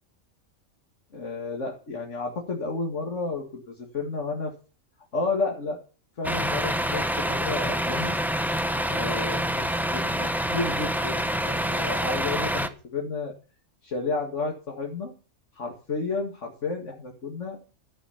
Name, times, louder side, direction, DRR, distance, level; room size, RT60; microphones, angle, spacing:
voice 1, 1.1-4.5 5.1-5.8 6.2-8.2 9.0-9.7 9.9-13.3 13.8-15.1 15.5-17.6, left 3 dB, 60° left, 0 dB, 2.5 m, -31 dB
Truck, 6.2-12.7, equal, ahead, 0.8 m, -27 dB
14.0 x 8.9 x 5.8 m, 0.37 s
omnidirectional pair, 1.4 m